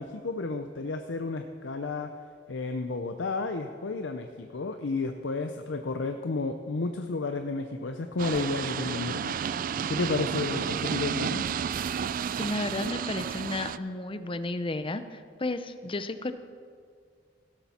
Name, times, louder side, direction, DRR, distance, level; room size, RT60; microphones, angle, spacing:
voice 1, 0.0-2.1 2.5-9.4 9.9-11.5, left 3 dB, 85° left, 7 dB, 0.6 m, -32 dB
sound 1, 8.2-13.8, right 7 dB, 50° right, 0.3 m, -31 dB
voice 2, 12.4-16.3, left 2 dB, 30° left, 11 dB, 0.6 m, -33 dB
16.0 x 12.5 x 4.3 m, 2.1 s
head